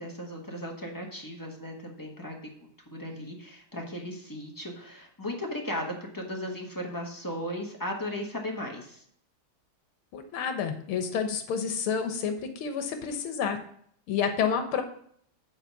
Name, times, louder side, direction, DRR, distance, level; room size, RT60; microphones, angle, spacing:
voice 1, 0.0-2.4 2.9-9.0, left 1 dB, 10° left, 0 dB, 1.1 m, -36 dB
voice 2, 10.1-13.6 14.1-14.8, left 7 dB, 85° left, 7 dB, 1.9 m, -29 dB
8.9 x 4.2 x 7.1 m, 0.63 s
omnidirectional pair, 2.3 m